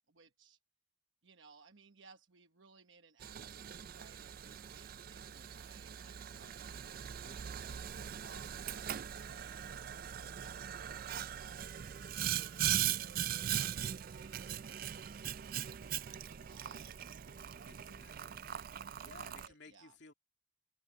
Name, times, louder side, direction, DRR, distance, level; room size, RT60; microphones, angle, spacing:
voice 1, 0.1-0.6 1.2-7.0 7.5-11.7 12.2-18.7 19.4-20.0, right 4 dB, 70° right, 1.1 m, -62 dB
Boiling, 3.2-19.5, right 10 dB, 45° right, 0.4 m, -40 dB
voice 2, 6.4-6.7 7.2-7.5 17.7-18.4 19.0-20.1, left 3 dB, 60° left, 2.9 m, -58 dB
head